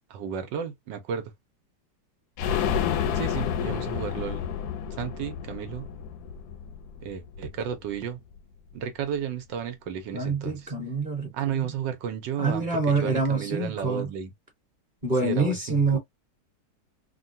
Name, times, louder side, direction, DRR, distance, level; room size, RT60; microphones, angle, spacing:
voice 1, 0.1-1.3 3.1-4.4 4.9-5.9 7.0-8.2 8.7-10.7 11.3-14.3 15.2-16.0, right 8 dB, 90° right, 1.5 m, -33 dB
sound 1, 2.4-8.0 8.3-8.4 8.7-8.8, left 8 dB, 70° left, 1.0 m, -30 dB
voice 2, 10.1-11.6 12.4-14.1 15.0-16.0, right 3 dB, 30° right, 1.1 m, -26 dB
3.5 x 2.3 x 2.6 m
omnidirectional pair, 1.9 m